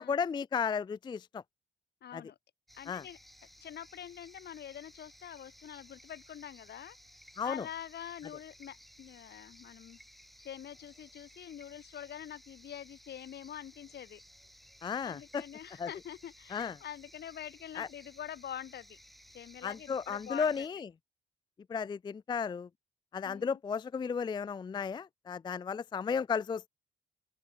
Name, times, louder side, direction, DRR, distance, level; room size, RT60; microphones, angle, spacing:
voice 1, 0.0-1.4 2.1-2.2 2.9-3.0 7.4-7.6 14.8-15.4 15.8-15.9 16.5-16.7 17.8-17.9 19.6-20.9 21.7-22.7 23.1-26.7, left 6 dB, 25° left, 0.3 m, -34 dB
voice 2, 2.0-2.4 2.7-3.2 3.6-7.0 7.4-10.0 10.4-14.2 15.0-19.0 19.3-20.7 23.2-23.6, left 10 dB, 65° left, 1.1 m, -45 dB
sound 1, 2.7-20.7, equal, ahead, 4.7 m, -58 dB
open air
cardioid pair, 105°, 19 cm